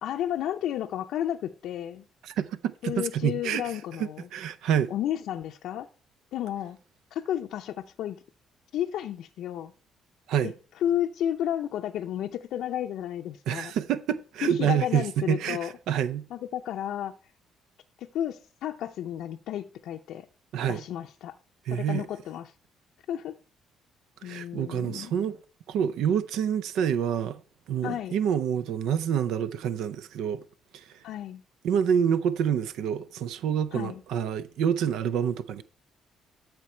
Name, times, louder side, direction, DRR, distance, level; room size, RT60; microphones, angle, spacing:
voice 1, 0.0-2.0 2.8-4.3 4.9-5.9 6.3-6.8 7.1-8.2 8.7-9.7 10.4-10.5 10.8-13.7 14.4-15.7 16.3-17.1 18.0-20.3 20.7-21.3 21.7-22.5 23.1-23.3 24.2-25.1 27.8-28.1 31.0-31.4 33.7-34.0, left 11 dB, 75° left, 0.5 m, -32 dB
voice 2, 2.2-4.9 10.3-10.5 13.5-16.3 20.5-20.8 21.7-22.1 24.2-25.4 25.7-27.4 27.7-30.4 30.7-31.0 31.6-35.6, right 8 dB, 80° right, 0.5 m, -27 dB
13.0 x 4.5 x 4.3 m
cardioid pair, 95°, 0 cm